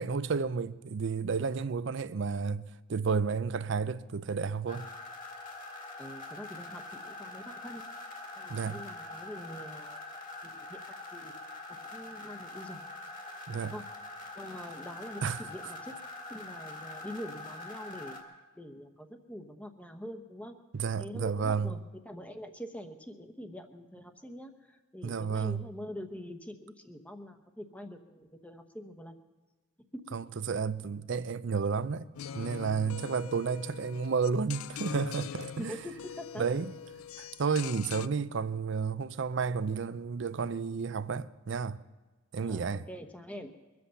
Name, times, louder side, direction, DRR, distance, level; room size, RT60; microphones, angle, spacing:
voice 1, 0.0-4.9 8.5-8.8 13.5-13.7 15.2-15.4 20.7-21.8 25.0-25.7 30.1-32.1 32.3-35.7 36.4-36.7 37.2-41.8 42.3-42.8, right 5 dB, 60° right, 0.5 m, -31 dB
sound 1, 4.7-18.2, left 2 dB, 40° left, 2.1 m, -44 dB
voice 2, 6.0-7.8 8.4-10.0 10.4-11.3 11.7-12.8 13.7-13.9 14.3-16.0 16.3-18.2 18.6-20.6 21.0-29.2 35.6-36.5 42.4-43.5, equal, 5° left, 0.9 m, -44 dB
sound 2, 32.1-38.1, left 8 dB, 80° left, 0.4 m, -42 dB
23.0 x 7.9 x 7.0 m
head